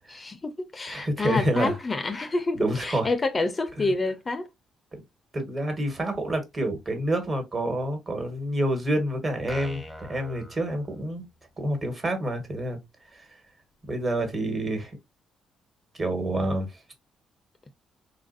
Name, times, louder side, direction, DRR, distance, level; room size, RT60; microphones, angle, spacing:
voice 1, 0.1-4.5, left 3 dB, 30° left, 0.5 m, -28 dB
voice 2, 0.9-1.7 2.5-3.1 3.8-3.9 5.3-11.2 11.6-12.8 13.2-13.3 13.9-14.9 16.0-16.7, right 1 dB, 30° right, 1.3 m, -28 dB
sound 1, 9.5-11.4, left 1 dB, 5° right, 0.8 m, -42 dB
4.0 x 2.4 x 2.5 m
cardioid pair, 90°, 0 cm